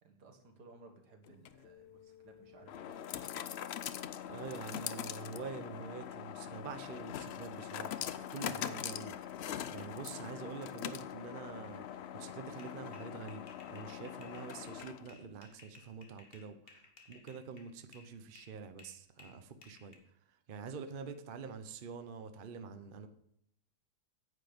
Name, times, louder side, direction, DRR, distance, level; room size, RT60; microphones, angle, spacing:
voice 1, 0.0-3.3, right 3 dB, 80° right, 4 dB, 2.1 m, -59 dB
sound 1, 1.3-15.2, left 10 dB, 85° left, 0.5 m, -43 dB
voice 2, 4.3-19.9 20.3-23.1, right 5 dB, 45° right, 8 dB, 0.8 m, -46 dB
sound 2, 12.6-18.1 18.4-20.0, left 4 dB, 40° left, 1.5 m, -59 dB
9.6 x 8.2 x 5.1 m, 0.74 s
omnidirectional pair, 1.7 m